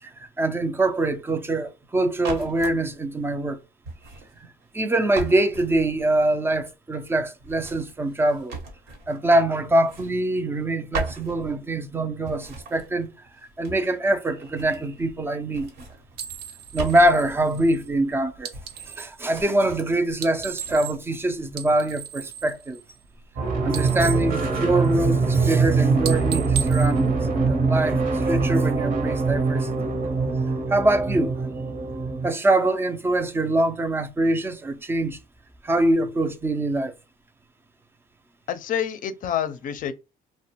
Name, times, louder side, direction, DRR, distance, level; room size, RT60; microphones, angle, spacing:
voice 1, 0.0-3.6 4.4-4.5 4.7-8.6 9.1-13.1 13.6-15.7 16.7-18.5 18.8-22.8 23.6-29.9 30.7-31.5 32.2-35.2 35.6-36.9, right 1 dB, 15° right, 0.4 m, -24 dB
sound 1, 2.2-2.8 3.8-4.8 5.1-6.2 7.4-9.3 9.6-10.7 10.9-11.9 12.2-14.0 14.3-15.2 15.5-17.7 18.5-19.1 19.3-20.0 20.4-20.8, right 3 dB, 90° right, 1.1 m, -38 dB
sound 2, 16.1-19.2 20.1-21.2 21.5-23.4 23.6-25.2 25.5-25.7 26.0-27.8, right 8 dB, 70° right, 0.6 m, -37 dB
sound 3, 23.4-32.3, right 4 dB, 50° right, 0.8 m, -23 dB
voice 2, 38.5-39.9, left 9 dB, 50° left, 0.5 m, -27 dB
2.5 x 2.1 x 2.8 m
cardioid pair, 110°, 17 cm